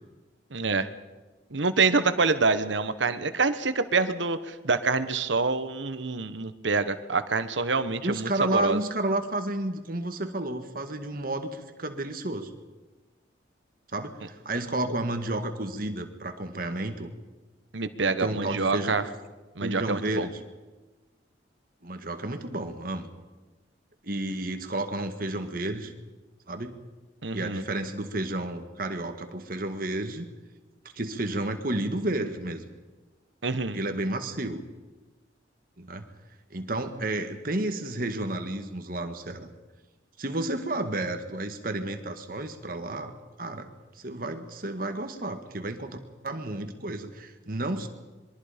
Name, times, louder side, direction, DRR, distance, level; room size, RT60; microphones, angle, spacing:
voice 1, 0.5-0.9 1.5-8.8 17.7-19.1 19.6-20.3 27.2-27.6 33.4-33.8, right 4 dB, 85° right, 11 dB, 1.2 m, -26 dB
voice 2, 8.0-12.5 13.9-17.1 18.2-18.9 19.6-20.4 21.8-23.1 24.0-25.9 26.5-26.8 27.3-30.3 30.9-32.6 33.7-34.6 35.8-36.0 36.5-39.5 40.2-43.7 44.0-46.0 46.2-47.9, right 2 dB, 50° right, 7 dB, 1.8 m, -31 dB
26.5 x 22.5 x 5.2 m, 1.2 s
head